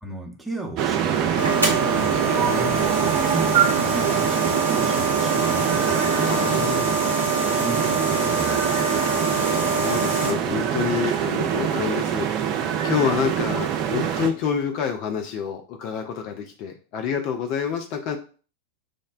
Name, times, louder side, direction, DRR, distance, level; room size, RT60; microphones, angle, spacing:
voice 1, 0.0-6.7 7.5-9.3, right 2 dB, 5° right, -1 dB, 0.8 m, -35 dB
sound 1, 0.8-14.3, right 9 dB, 40° right, 0.5 m, -24 dB
sound 2, 1.4-10.3, right 3 dB, 90° left, 1.0 m, -25 dB
voice 2, 2.5-3.0 5.8-7.0 9.5-12.3 12.8-18.2, left 7 dB, 40° left, 5 dB, 0.4 m, -28 dB
6.2 x 2.1 x 2.3 m, 0.39 s
figure-of-eight pair, 90°, 0 cm